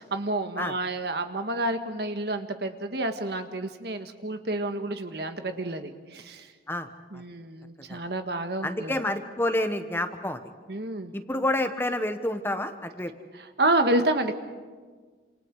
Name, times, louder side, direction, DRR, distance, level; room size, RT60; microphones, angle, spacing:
voice 1, 0.1-6.5 7.1-9.0 10.7-11.1 13.3-14.3, right 2 dB, 60° right, 7 dB, 1.5 m, -29 dB
voice 2, 8.6-10.4 11.1-13.1, left 1 dB, 10° left, 8 dB, 1.1 m, -28 dB
28.5 x 27.0 x 4.8 m, 1.5 s
head